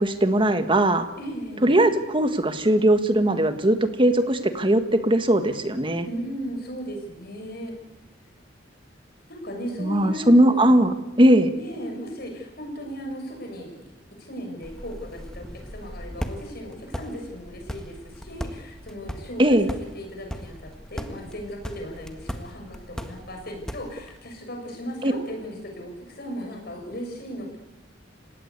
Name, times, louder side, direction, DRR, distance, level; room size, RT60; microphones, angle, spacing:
voice 1, 0.0-1.1 1.6-6.1 9.8-11.5 19.4-19.7 25.0-25.1, right 1 dB, 30° right, 8 dB, 1.8 m, -19 dB
voice 2, 1.2-1.7 6.0-7.7 9.3-10.8 11.6-13.8 14.1-19.6 19.9-27.6, equal, 55° left, 3 dB, 6.8 m, -36 dB
sound 1, 14.6-24.2, equal, 5° left, 1.6 m, -38 dB
30.0 x 17.5 x 8.4 m, 1.0 s
head